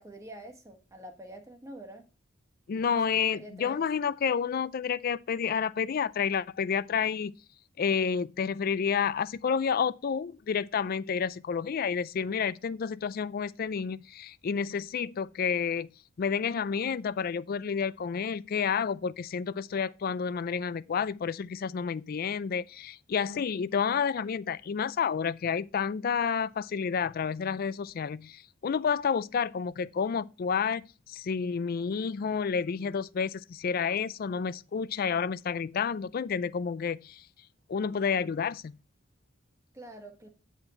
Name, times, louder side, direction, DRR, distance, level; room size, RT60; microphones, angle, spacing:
voice 1, 0.0-2.1 2.8-3.8 39.7-40.3, right 1 dB, 15° right, 1.3 m, -46 dB
voice 2, 2.7-7.3 7.8-15.9 16.2-37.2 37.7-38.8, left 6 dB, 50° left, 0.4 m, -30 dB
9.7 x 4.6 x 4.2 m
head